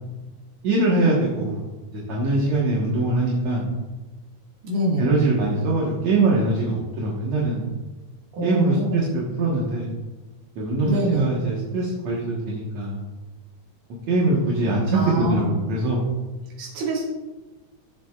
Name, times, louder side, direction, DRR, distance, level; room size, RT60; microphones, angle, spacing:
voice 1, 0.6-1.7 1.9-3.6 5.0-7.7 8.4-9.9 10.6-13.0 14.1-16.0, right 2 dB, 60° right, -4 dB, 2.5 m, -22 dB
voice 2, 4.6-5.1 8.3-9.0 10.8-11.3 14.9-15.5 16.6-17.0, right 1 dB, 80° right, -5 dB, 3.7 m, -24 dB
16.5 x 7.6 x 2.4 m, 1.1 s
omnidirectional pair, 3.9 m